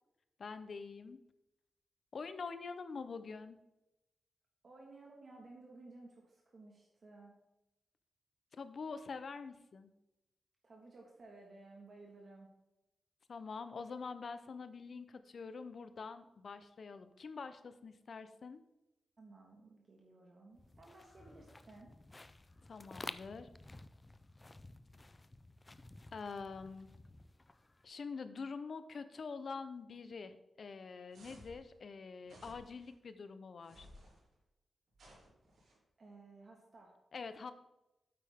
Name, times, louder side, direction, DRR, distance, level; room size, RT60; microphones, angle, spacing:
voice 1, 0.4-1.2 2.1-3.6 8.5-9.9 13.3-18.6 22.7-23.5 26.1-26.9 27.8-33.9 37.1-37.5, left 4 dB, 50° left, 11 dB, 0.7 m, -45 dB
voice 2, 4.6-7.3 10.6-12.5 19.2-21.9 36.0-36.9, right 2 dB, 40° right, -1 dB, 1.6 m, -56 dB
sound 1, 20.6-27.9, left 2 dB, 20° left, 0.4 m, -53 dB
sound 2, 31.1-31.6 32.2-32.9 33.6-34.2 34.9-35.8, equal, 80° right, 3.7 m, -58 dB
8.9 x 8.5 x 3.5 m, 0.94 s
wide cardioid pair, 155°, 0 cm